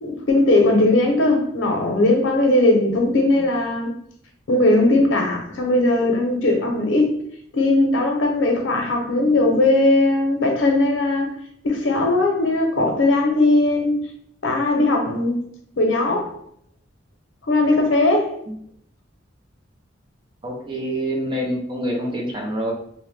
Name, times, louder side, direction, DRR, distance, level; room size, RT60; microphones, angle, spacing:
voice 1, 0.0-3.9 4.5-7.2 7.5-11.3 11.6-14.1 14.4-15.4 15.8-16.3 17.5-18.3, left 2 dB, 85° left, 0.6 m, -18 dB
voice 2, 20.4-22.7, equal, 25° right, 0.4 m, -26 dB
2.7 x 2.1 x 3.1 m
head